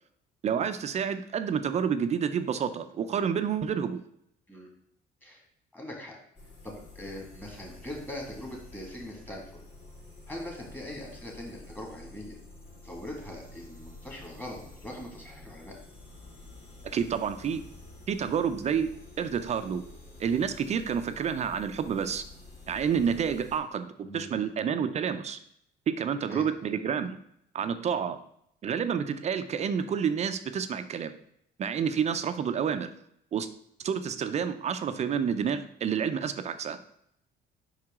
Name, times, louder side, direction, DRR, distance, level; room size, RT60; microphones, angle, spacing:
voice 1, 0.4-4.0 16.8-17.6 18.1-18.9 19.2-19.8 20.2-22.2 22.7-25.4 25.9-27.2 27.5-28.2 28.6-31.1 31.6-32.9 33.3-33.5 33.8-36.8, right 7 dB, 40° right, 10 dB, 0.5 m, -29 dB
voice 2, 5.7-6.2 6.6-9.6 10.3-12.4 12.8-15.8 24.0-24.5 26.3-26.4, left 1 dB, 10° left, 0 dB, 1.9 m, -41 dB
sound 1, 6.3-23.6, left 2 dB, 45° left, 2.6 m, -49 dB
5.5 x 4.8 x 3.6 m, 0.72 s
cardioid pair, 110°, 17 cm